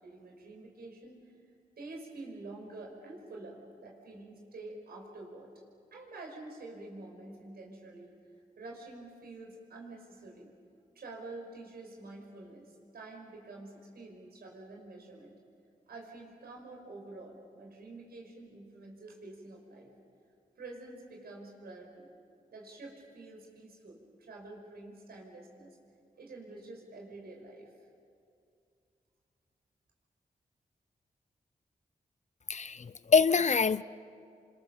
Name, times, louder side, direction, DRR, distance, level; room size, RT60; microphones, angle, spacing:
voice 1, 0.0-1.2 1.8-5.5 5.9-8.1 8.6-10.5 11.0-15.4 15.9-19.9 20.6-22.1 22.5-25.8 26.2-27.7, right 2 dB, 85° right, 0 dB, 5.6 m, -48 dB
voice 2, 32.5-33.8, left 5 dB, 50° left, 17 dB, 0.8 m, -25 dB
29.0 x 26.0 x 7.2 m, 2.4 s
cardioid pair, 55°, 16 cm